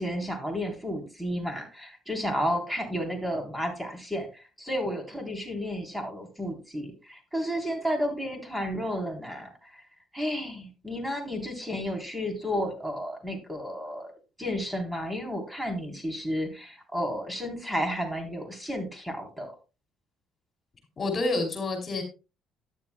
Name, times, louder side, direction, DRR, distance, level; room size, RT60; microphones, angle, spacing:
voice 1, 0.0-9.8 10.1-14.1 14.4-19.5, equal, 10° right, 3 dB, 3.5 m, -32 dB
voice 2, 21.0-22.0, left 2 dB, 40° left, 4 dB, 2.7 m, -28 dB
13.0 x 9.4 x 2.2 m, 0.32 s
supercardioid pair, 65°, 0 cm